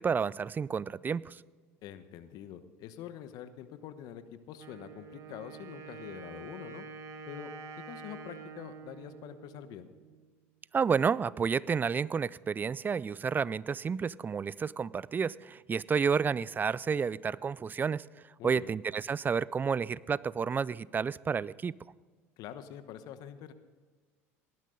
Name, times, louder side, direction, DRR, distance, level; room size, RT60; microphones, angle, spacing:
voice 1, 0.0-1.4 10.7-18.0 18.4-21.7, right 6 dB, 25° right, 21 dB, 0.4 m, -30 dB
voice 2, 1.8-6.8 7.3-7.5 7.9-9.9 18.4-18.8 22.4-23.5, left 10 dB, 60° left, 11 dB, 1.1 m, -45 dB
Wind instrument woodwind instrument, 4.5-10.3, right 5 dB, 45° right, 1.8 m, -47 dB
18.5 x 12.0 x 3.9 m, 1.4 s
hypercardioid pair, 80°, 8 cm